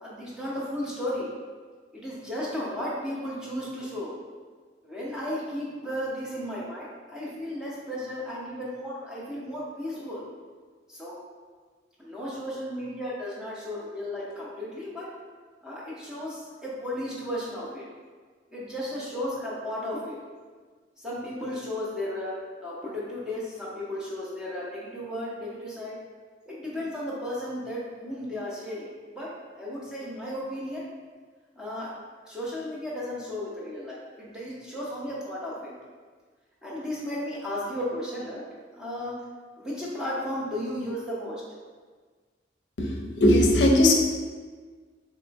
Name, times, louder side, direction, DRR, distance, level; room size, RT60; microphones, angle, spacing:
voice 1, 0.0-1.3 1.9-4.2 4.8-10.2 10.9-11.2 12.0-15.1 15.6-17.8 18.5-20.1 21.0-26.0 26.5-29.3 29.6-30.9 31.6-31.9 32.2-35.7 36.6-38.4 38.8-39.1 39.6-41.4, left 1 dB, 5° right, -8 dB, 0.8 m, -34 dB
voice 2, 42.8-43.9, left 1 dB, 75° left, 1 dB, 0.5 m, -19 dB
3.7 x 3.1 x 3.4 m, 1.5 s
head